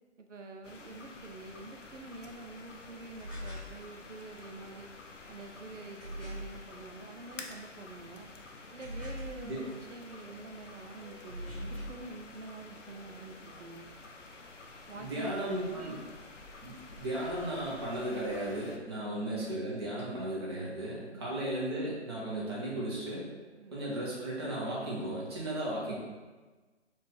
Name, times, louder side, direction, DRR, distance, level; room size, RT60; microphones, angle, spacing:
voice 1, 0.2-4.9 5.3-8.3 8.7-13.9 14.9-15.9 19.0-19.2 21.1-21.3 23.6-23.8, right 3 dB, 80° right, 4 dB, 0.7 m, -47 dB
sound 1, 0.6-18.8, left 3 dB, 90° left, 0.8 m, -50 dB
sound 2, 3.2-3.8 6.0-6.6 8.8-9.5 11.3-12.0, equal, 5° left, 1.0 m, -40 dB
voice 2, 14.9-16.0 16.6-23.2 23.7-25.9, right 1 dB, 20° right, -6 dB, 0.9 m, -35 dB
4.3 x 2.5 x 4.4 m, 1.3 s
figure-of-eight pair, 155°, 36 cm